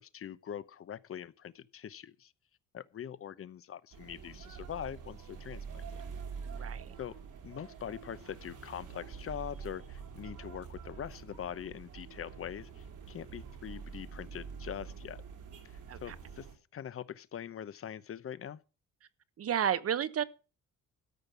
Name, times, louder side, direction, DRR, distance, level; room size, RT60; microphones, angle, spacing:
voice 1, 0.0-2.3 2.7-6.0 6.6-6.7 7.0-7.1 7.4-15.2 16.0-16.5 16.7-18.6, left 9 dB, 45° left, 0.9 m, -43 dB
sound 1, 3.9-16.5, right 6 dB, 85° right, 3.7 m, -46 dB
voice 2, 6.5-6.9 15.9-16.1 19.4-20.2, right 9 dB, 50° right, 1.0 m, -32 dB
13.5 x 5.4 x 8.1 m
cardioid pair, 90°, 30 cm